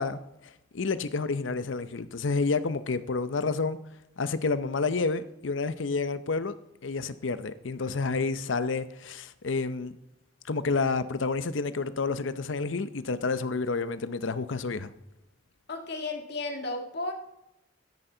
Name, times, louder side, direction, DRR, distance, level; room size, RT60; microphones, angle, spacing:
voice 1, 0.0-3.8 4.2-6.6 6.8-9.9 10.5-14.9, left 4 dB, 80° left, 0.7 m, -29 dB
voice 2, 15.7-17.1, left 2 dB, 60° left, 1.7 m, -33 dB
13.5 x 9.9 x 3.9 m
head